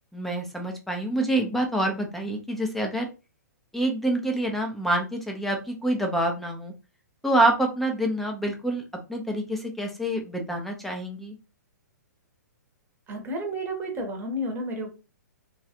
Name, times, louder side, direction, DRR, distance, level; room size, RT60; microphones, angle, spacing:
voice 1, 0.1-3.1 3.7-6.7 7.2-8.8 9.1-11.3, right 1 dB, ahead, 2 dB, 0.6 m, -26 dB
voice 2, 13.1-14.9, equal, 20° right, 3 dB, 1.0 m, -31 dB
3.1 x 2.3 x 2.7 m, 0.30 s
hypercardioid pair, 120°, 10 cm